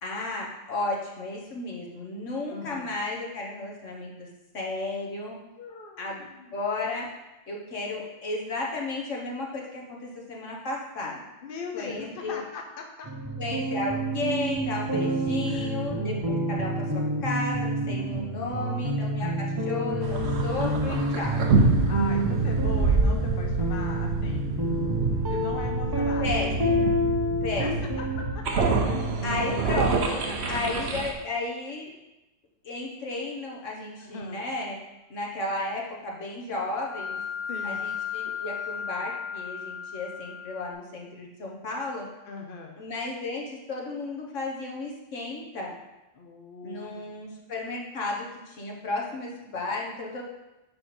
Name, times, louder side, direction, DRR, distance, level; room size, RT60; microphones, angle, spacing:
voice 1, 0.0-4.3 4.5-5.4 6.0-6.3 6.5-7.1 7.5-11.2 11.7-12.4 13.4-21.4 26.2-27.0 27.4-28.1 29.2-31.9 32.6-34.8 35.1-37.2 37.6-42.1 42.8-45.7 46.6-50.2, left 2 dB, 80° left, -2 dB, 1.7 m, -33 dB
voice 2, 2.5-2.9 5.6-6.5 11.4-13.1 15.5-15.7 18.5-18.9 19.2-19.5 21.9-24.5 25.2-26.5 27.6-27.7 28.2-28.4 30.3-30.6 34.0-34.5 37.5-37.9 42.3-42.8 46.1-47.1, left 4 dB, 50° left, 2 dB, 1.0 m, -40 dB
sound 1, 13.0-29.7, right 1 dB, 25° right, 0.7 m, -28 dB
sound 2, 20.0-31.1, right 3 dB, 60° right, 1.2 m, -27 dB
sound 3, 36.8-40.7, left 7 dB, 45° right, 1.9 m, -35 dB
7.7 x 5.8 x 4.3 m, 1.0 s
omnidirectional pair, 1.3 m